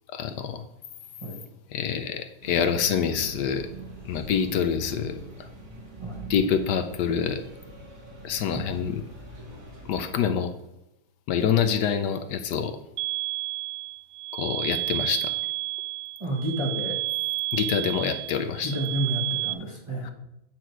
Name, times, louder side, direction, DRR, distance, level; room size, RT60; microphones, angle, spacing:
voice 1, 0.1-0.6 1.7-3.7 4.0-5.5 6.3-7.4 8.2-9.0 9.9-10.5 11.3-12.8 14.3-15.3 17.5-18.7 20.0-20.1, left 7 dB, 75° left, 8 dB, 1.2 m, -26 dB
sound 1, 2.4-10.1, right 2 dB, 50° right, 2.1 m, -42 dB
sound 2, 13.0-19.5, right 19 dB, 75° right, 0.7 m, -31 dB
voice 2, 16.2-17.0 18.6-20.1, right 1 dB, 20° right, -2 dB, 1.4 m, -30 dB
9.2 x 6.0 x 4.6 m, 0.86 s
omnidirectional pair, 1.9 m